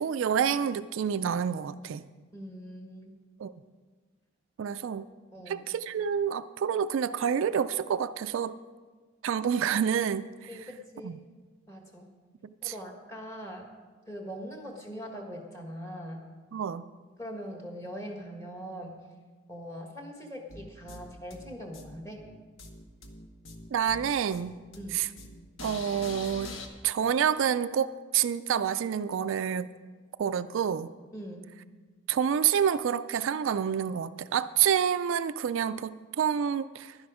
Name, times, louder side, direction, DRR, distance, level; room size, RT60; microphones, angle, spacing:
voice 1, 0.0-2.0 3.4-3.5 4.6-5.0 5.5-8.6 9.2-10.3 11.0-11.2 12.6-12.7 16.5-16.9 23.7-24.6 24.9-25.1 25.6-26.6 26.8-29.7 30.2-30.9 32.1-37.0, right 8 dB, 70° right, 12 dB, 0.3 m, -28 dB
voice 2, 2.3-3.1 5.3-5.6 10.5-11.2 11.7-12.1 12.6-13.7 14.1-16.2 17.2-19.0 19.5-22.2 24.8-25.0 31.1-31.5, equal, 15° left, 1 dB, 1.4 m, -41 dB
sound 1, 20.5-26.7, left 2 dB, 70° left, 1.1 m, -44 dB
11.0 x 10.5 x 4.9 m, 1.4 s
head